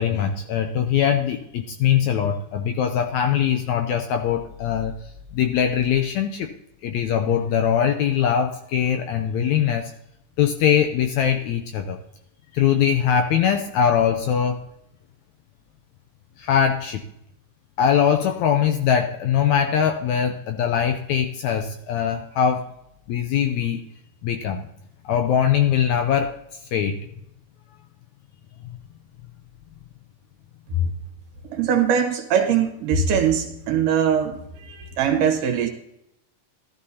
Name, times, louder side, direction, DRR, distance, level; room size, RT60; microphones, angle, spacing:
voice 1, 0.0-5.0 5.3-6.5 6.8-9.9 10.4-12.0 12.5-14.6 16.4-17.0 17.8-22.6 23.1-23.8 24.2-24.6 25.1-26.4 26.7-27.0, left 8 dB, 80° left, 6 dB, 1.8 m, -21 dB
voice 2, 31.5-35.7, right 6 dB, 75° right, 4 dB, 2.7 m, -21 dB
15.0 x 13.0 x 2.8 m, 0.78 s
omnidirectional pair, 3.9 m